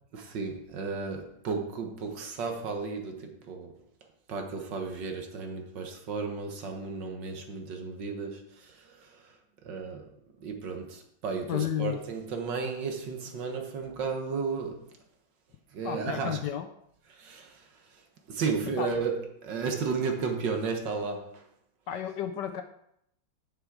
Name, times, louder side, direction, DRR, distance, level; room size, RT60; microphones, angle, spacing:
voice 1, 0.1-3.8 4.3-9.4 9.6-10.1 10.4-14.8 15.7-16.4 17.1-18.0 18.3-21.4, right 4 dB, 65° right, 1.9 m, -34 dB
voice 2, 11.5-12.0 15.8-16.7 18.8-18.9 21.9-22.6, left 10 dB, 70° left, 1.3 m, -32 dB
9.6 x 6.4 x 4.8 m
omnidirectional pair, 2.2 m